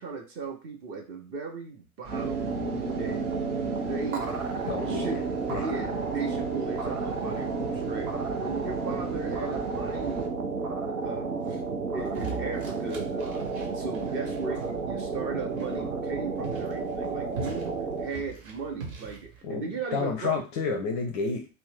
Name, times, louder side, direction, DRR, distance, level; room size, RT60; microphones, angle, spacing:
voice 1, 0.0-2.5 3.0-3.2 3.6-4.3 4.9-5.2 5.5-8.1 8.4-10.4 10.8-13.4 13.7-20.4, right 4 dB, 30° right, 3 dB, 0.6 m, -37 dB
sound 1, 2.0-10.3, right 5 dB, 45° right, 0.9 m, -43 dB
sound 2, 2.1-18.1, right 4 dB, 90° right, 0.6 m, -31 dB
voice 2, 4.7-5.1 5.5-5.7 19.4-19.6 19.9-21.5, left 4 dB, 30° left, 4 dB, 0.4 m, -30 dB
sound 3, 12.0-19.4, right 4 dB, 70° right, 1.2 m, -42 dB
2.6 x 2.0 x 3.3 m, 0.30 s
figure-of-eight pair, 95°, 43 cm